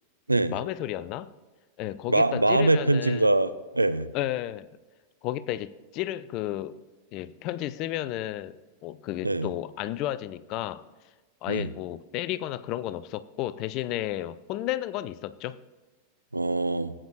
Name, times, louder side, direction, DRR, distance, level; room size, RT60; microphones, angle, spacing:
voice 1, 0.5-1.3 1.8-3.3 4.1-4.7 5.2-6.8 7.1-8.6 8.8-10.8 11.4-15.6, left 14 dB, 40° left, 17 dB, 0.4 m, -32 dB
voice 2, 2.1-4.1 9.2-9.5 11.5-11.7 16.3-16.9, right 2 dB, 85° right, 13 dB, 0.4 m, -23 dB
17.0 x 8.7 x 2.6 m, 1.3 s
figure-of-eight pair, 90°, 0 cm